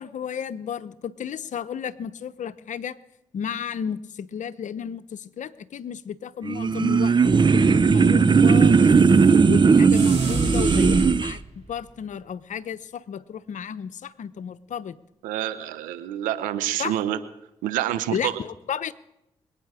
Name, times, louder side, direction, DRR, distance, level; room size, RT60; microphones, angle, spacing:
voice 1, 0.0-3.0 3.3-9.1 9.5-15.0 16.8-16.9 18.1-18.9, left 8 dB, 65° left, 14 dB, 0.8 m, -33 dB
sound 1, 6.4-11.3, right 5 dB, 35° right, 0.6 m, -17 dB
sound 2, 9.9-11.7, right 3 dB, 55° right, 5.6 m, -28 dB
voice 2, 15.2-17.2 17.6-18.3, right 12 dB, 90° right, 13 dB, 0.8 m, -27 dB
26.0 x 9.1 x 4.9 m, 0.87 s
supercardioid pair, 40°, 13 cm